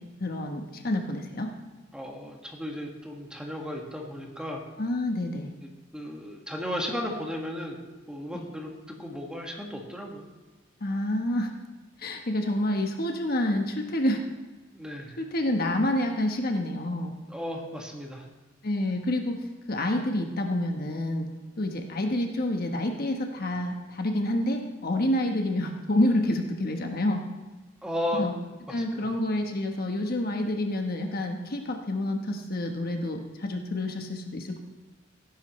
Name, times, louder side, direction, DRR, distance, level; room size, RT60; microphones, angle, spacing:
voice 1, 0.2-1.5 4.8-5.5 8.3-8.4 10.8-11.5 12.0-14.2 15.2-17.1 18.6-19.4 19.7-21.3 21.6-27.2 28.2-28.3 28.7-34.6, left 1 dB, 55° left, 4 dB, 1.1 m, -28 dB
voice 2, 1.9-4.6 5.9-7.8 8.1-10.2 14.7-15.2 17.3-18.2 27.8-28.3 28.8-29.1, left 1 dB, 5° right, 0 dB, 1.7 m, -35 dB
17.5 x 10.5 x 3.2 m, 1.2 s
head